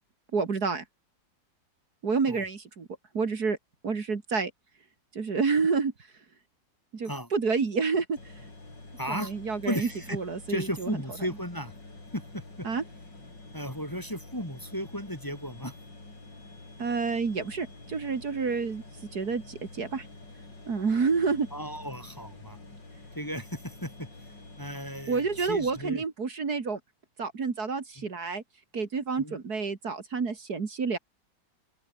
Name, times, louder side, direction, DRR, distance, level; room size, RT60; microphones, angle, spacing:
voice 1, 0.3-0.8 2.0-2.9 3.1-3.6 3.8-4.5 5.1-5.9 6.9-8.2 9.1-11.0 12.6-12.8 16.8-18.8 19.1-20.1 20.7-21.5 25.1-26.8 27.2-28.4 28.7-31.0, right 5 dB, 55° right, 2.7 m, -29 dB
sound 1, 8.2-25.9, left 2 dB, 70° left, 7.3 m, -48 dB
voice 2, 9.0-9.3 9.6-10.2 10.5-11.7 12.1-12.7 13.5-15.7 21.5-22.6 23.1-24.1 24.6-26.0 28.0-28.1 29.2-29.4, equal, 10° left, 3.2 m, -35 dB
open air
omnidirectional pair, 2.1 m